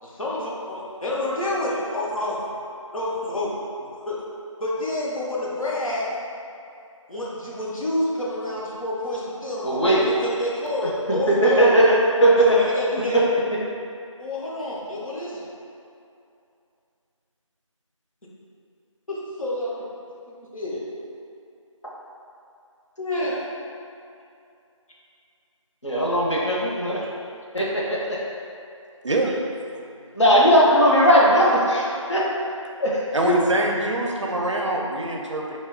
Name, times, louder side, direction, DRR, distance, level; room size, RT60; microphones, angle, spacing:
voice 1, 0.0-2.4 2.9-3.5 4.1-4.2 4.6-6.2 7.1-11.8 12.4-13.2 14.2-15.5 19.1-19.8 20.3-20.9 23.0-23.4, left 1 dB, 85° left, -6 dB, 0.8 m, -28 dB
voice 2, 9.6-10.1 10.8-12.3 25.8-27.0 27.5-28.2 30.1-32.2 32.8-33.3, equal, 60° left, -5 dB, 0.7 m, -19 dB
voice 3, 29.0-29.4 33.1-35.6, right 2 dB, 65° right, -1 dB, 0.4 m, -24 dB
2.8 x 2.2 x 3.4 m, 2.6 s
figure-of-eight pair, 175°, 17 cm